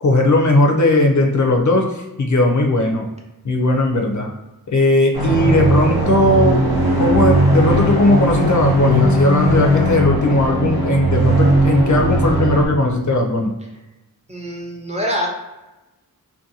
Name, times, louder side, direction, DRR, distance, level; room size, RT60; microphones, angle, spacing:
voice 1, 0.0-3.1 3.4-4.3 4.7-6.5 7.0-13.5, left 1 dB, 50° left, 1 dB, 0.5 m, -17 dB
sound 1, 5.1-12.7, right 1 dB, 85° right, 0.7 m, -17 dB
voice 2, 14.3-15.3, equal, 20° right, -2 dB, 0.5 m, -24 dB
2.5 x 2.2 x 2.7 m, 1.0 s
wide cardioid pair, 55°, 37 cm